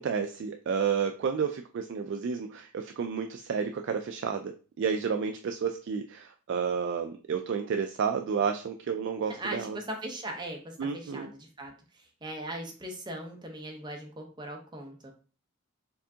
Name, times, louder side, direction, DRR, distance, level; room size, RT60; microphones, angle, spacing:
voice 1, 0.0-9.8 10.8-11.3, right 6 dB, 55° right, 6 dB, 0.3 m, -31 dB
voice 2, 9.3-15.1, right 1 dB, 20° right, 2 dB, 0.8 m, -39 dB
4.5 x 3.5 x 2.7 m, 0.38 s
head